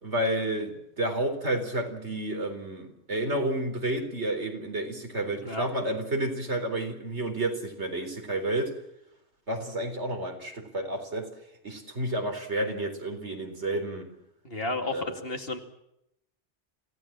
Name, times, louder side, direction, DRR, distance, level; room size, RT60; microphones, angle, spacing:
voice 1, 0.0-8.7 9.5-11.3 11.6-14.1 14.9-15.2, right 1 dB, 90° right, 4 dB, 4.4 m, -30 dB
voice 2, 14.4-15.6, left 2 dB, 60° left, 5 dB, 2.7 m, -32 dB
26.5 x 17.0 x 7.5 m, 0.80 s
omnidirectional pair, 1.1 m